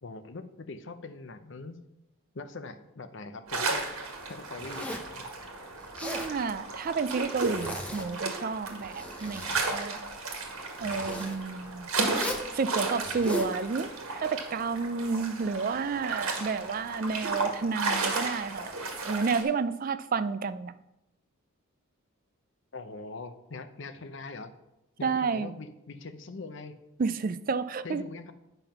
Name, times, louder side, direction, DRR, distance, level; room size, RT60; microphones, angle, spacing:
voice 1, 0.0-1.8 2.3-3.8 4.3-5.3 22.7-24.5 25.0-26.8 27.8-28.3, left 3 dB, 55° left, 10 dB, 0.7 m, -42 dB
sound 1, 3.5-19.4, right 3 dB, 75° right, 1.7 m, -34 dB
Zipper (clothing), 4.6-5.1 5.8-6.3 7.4-8.2 8.7-9.7 10.8-11.4 12.1-12.5 13.0-13.5, left 1 dB, 5° left, 0.9 m, -38 dB
voice 2, 6.0-10.0 10.8-11.9 12.5-18.8 19.0-20.8 25.0-25.5 27.0-28.0, right 5 dB, 40° right, 14 dB, 0.3 m, -31 dB
8.9 x 5.6 x 5.6 m, 0.91 s
head